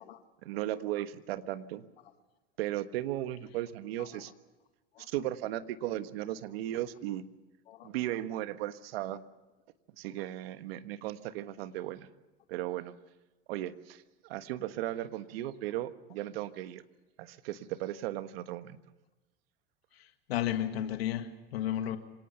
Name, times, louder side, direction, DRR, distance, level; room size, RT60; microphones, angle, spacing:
voice 1, 0.4-1.8 2.6-4.3 5.0-7.2 7.8-9.2 10.0-12.1 12.5-12.9 13.5-16.8 17.2-18.8, right 14 dB, 75° right, 11 dB, 1.5 m, -36 dB
voice 2, 20.0-22.0, left 11 dB, 85° left, 7 dB, 1.7 m, -33 dB
26.0 x 18.0 x 6.9 m, 1.1 s
hypercardioid pair, 100°, 30 cm